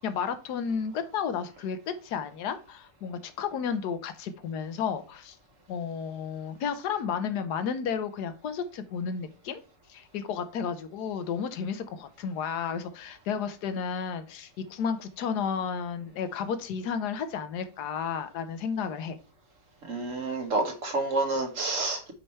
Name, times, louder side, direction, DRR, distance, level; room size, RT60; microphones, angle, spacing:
voice 1, 0.0-1.8 2.0-5.4 5.7-9.6 9.9-19.2, left 6 dB, 70° left, 1.3 m, -32 dB
voice 2, 19.9-22.1, right 3 dB, 50° right, 1.5 m, -29 dB
5.5 x 4.9 x 4.3 m
omnidirectional pair, 1.9 m